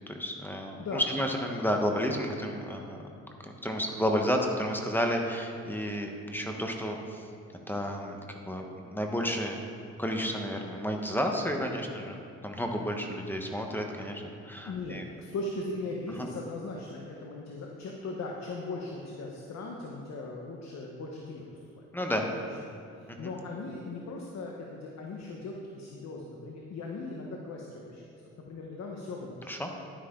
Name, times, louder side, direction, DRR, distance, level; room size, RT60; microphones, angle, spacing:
voice 1, 0.1-3.0 3.4-7.0 7.7-8.7 8.9-9.6 10.0-15.0 21.9-22.2 23.2-23.3 29.5-29.7, equal, 5° left, 2 dB, 1.3 m, -31 dB
voice 2, 14.6-21.4 21.8-21.9 22.1-22.3 23.0-28.0 28.5-29.5, left 2 dB, 60° left, -1 dB, 1.3 m, -38 dB
11.0 x 9.9 x 3.9 m, 2.5 s
cardioid pair, 90°, 30 cm